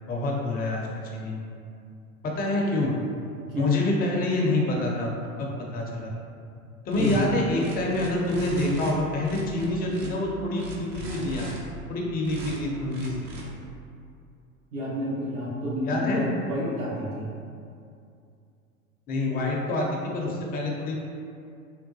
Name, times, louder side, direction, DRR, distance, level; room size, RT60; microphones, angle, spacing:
voice 1, 0.1-0.8 1.1-1.4 2.2-2.9 3.6-5.5 5.7-6.1 6.9-11.5 11.9-13.2 15.8-16.2 19.1-21.0, left 2 dB, 20° left, -2 dB, 0.4 m, -27 dB
sound 1, 6.9-7.3 7.6-8.9 9.2-10.1 10.6-11.6 12.2-12.6 12.9-13.4, right 3 dB, 60° right, 0.7 m, -37 dB
voice 2, 7.0-7.3 14.7-17.3, equal, 75° right, -6 dB, 1.1 m, -29 dB
3.7 x 2.2 x 2.7 m, 2.4 s
hypercardioid pair, 90°, 42 cm